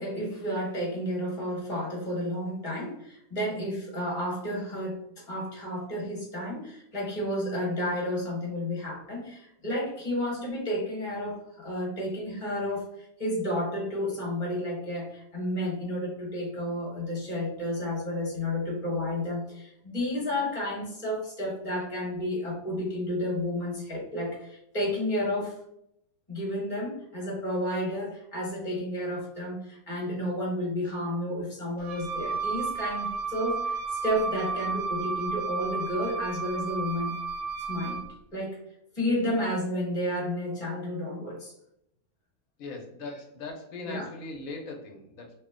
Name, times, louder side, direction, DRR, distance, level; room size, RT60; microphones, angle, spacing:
voice 1, 0.0-25.6 26.3-37.2 37.7-38.1 38.3-38.6 38.9-41.5 43.9-44.1, left 1 dB, 25° left, -3 dB, 1.3 m, -31 dB
Wind instrument woodwind instrument, 31.8-38.1, right 4 dB, 80° right, 1.1 m, -32 dB
voice 2, 42.6-45.4, left 3 dB, 75° left, 1 dB, 1.2 m, -40 dB
3.1 x 2.2 x 3.6 m, 0.75 s
omnidirectional pair, 1.5 m